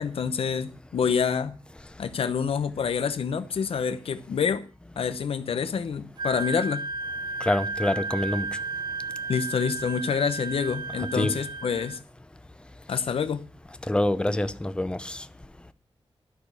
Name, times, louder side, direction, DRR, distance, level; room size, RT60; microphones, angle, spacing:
voice 1, 0.0-1.6 2.0-4.6 5.0-6.9 9.3-12.0 12.9-13.5, left 6 dB, 80° left, 0.8 m, -27 dB
Wind instrument woodwind instrument, 6.2-12.0, right 3 dB, 50° right, 1.1 m, -33 dB
voice 2, 7.4-8.5 11.1-11.3 13.9-15.2, left 1 dB, 10° left, 0.7 m, -26 dB
11.5 x 6.2 x 8.2 m
wide cardioid pair, 150°, 10 cm